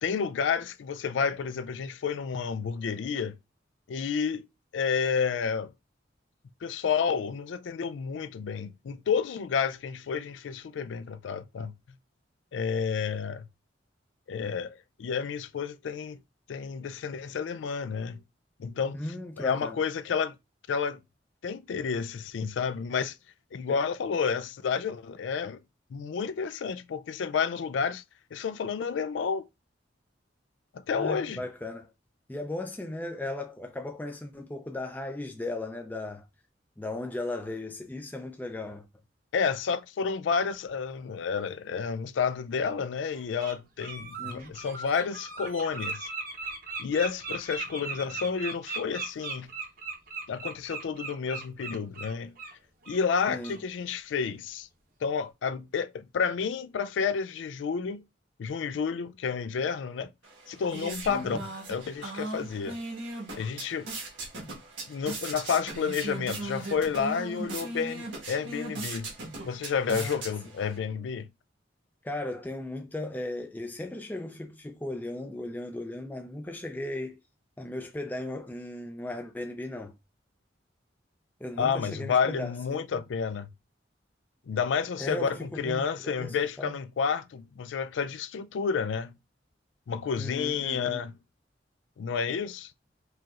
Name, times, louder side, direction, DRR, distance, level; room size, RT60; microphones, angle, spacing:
voice 1, 0.0-3.4 3.9-4.4 4.7-5.7 6.6-11.7 12.5-13.5 14.3-16.2 16.5-18.2 18.6-19.0 19.4-20.3 20.7-21.0 21.4-23.2 23.5-25.6 25.9-28.0 28.3-29.4 30.9-31.4 39.3-46.1 46.8-49.5 50.3-52.3 52.9-54.7 55.0-58.0 58.4-60.1 60.5-62.8 63.3-63.9 64.9-69.1 69.4-71.3 81.6-83.5 84.5-89.1 89.9-91.1 92.0-92.7, left 6 dB, 80° left, 0.4 m, -30 dB
voice 2, 18.9-19.8 23.7-23.8 30.9-31.9 32.3-36.3 36.8-38.8 44.2-44.6 53.3-53.6 61.1-61.4 69.9-70.3 72.0-77.2 77.6-79.9 81.4-83.0 85.0-86.8 90.2-91.0, left 1 dB, 10° left, 0.4 m, -37 dB
Bird, 41.7-41.8 42.6-42.7 43.1-43.5 43.8-52.5 52.8-53.0 53.4-53.6, right 4 dB, 50° right, 0.8 m, -38 dB
sound 1, 60.2-70.8, right 2 dB, 85° right, 1.4 m, -38 dB
4.8 x 2.9 x 2.4 m
head